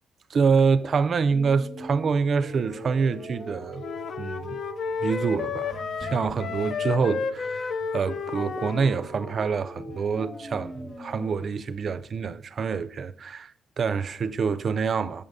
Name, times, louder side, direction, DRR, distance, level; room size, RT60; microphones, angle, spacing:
voice 1, 0.3-3.8 4.2-4.6 5.0-13.5 13.8-15.2, right 5 dB, 50° right, 0.4 m, -26 dB
sound 1, 1.3-11.3, right 2 dB, 20° right, 0.8 m, -42 dB
sound 2, 1.8-13.1, left 3 dB, 25° left, 0.7 m, -49 dB
sound 3, 3.8-9.0, left 6 dB, 55° left, 0.3 m, -32 dB
6.8 x 5.3 x 3.5 m
cardioid pair, 90°, 0 cm